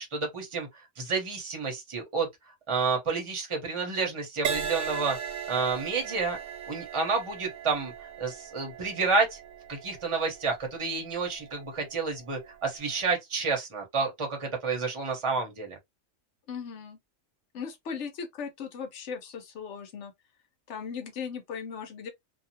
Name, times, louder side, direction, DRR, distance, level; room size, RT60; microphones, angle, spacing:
voice 1, 0.0-2.3 2.7-5.2 5.5-6.4 6.7-7.9 8.2-9.4 9.7-15.8, right 4 dB, 25° right, 0.8 m, -30 dB
Crash cymbal, 4.4-12.1 12.8-13.1, right 8 dB, 70° right, 0.9 m, -38 dB
voice 2, 16.5-17.0 17.5-20.1 20.7-22.1, left 6 dB, 60° left, 1.0 m, -38 dB
2.8 x 2.3 x 2.7 m
omnidirectional pair, 1.5 m